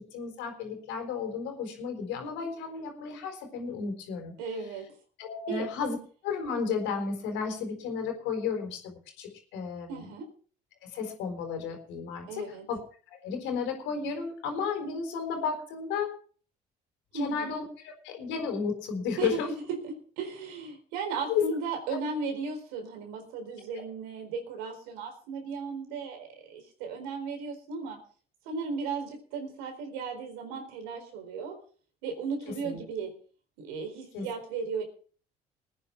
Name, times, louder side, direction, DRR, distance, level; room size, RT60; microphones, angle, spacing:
voice 1, 0.0-4.3 5.2-6.0 6.2-10.1 10.8-12.8 13.1-16.2 17.1-19.5 21.3-21.5 32.5-32.8 34.1-34.3, left 6 dB, 80° left, 4 dB, 4.2 m, -33 dB
voice 2, 4.4-4.9 5.5-5.6 9.9-10.3 12.3-12.6 17.1-17.5 19.2-19.4 19.7-28.0 28.5-31.6 32.0-33.1 33.6-34.8, right 5 dB, 85° right, 5 dB, 4.3 m, -36 dB
20.5 x 9.5 x 4.7 m, 0.42 s
hypercardioid pair, 55°, 19 cm